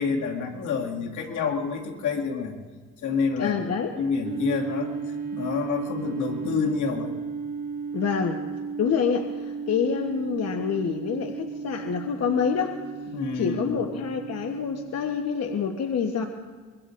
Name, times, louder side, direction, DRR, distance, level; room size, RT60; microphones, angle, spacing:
voice 1, 0.0-2.6 3.0-3.6 4.0-5.0 5.3-7.2 13.1-13.8, left 5 dB, 75° left, 1 dB, 2.2 m, -28 dB
voice 2, 3.4-3.9 7.9-8.4 8.8-12.8 13.3-16.3, left 6 dB, 55° left, 4 dB, 1.1 m, -27 dB
sound 1, 4.2-14.8, right 5 dB, 55° right, 1.9 m, -34 dB
25.0 x 22.5 x 2.6 m, 1.4 s
cardioid pair, 90°, 30 cm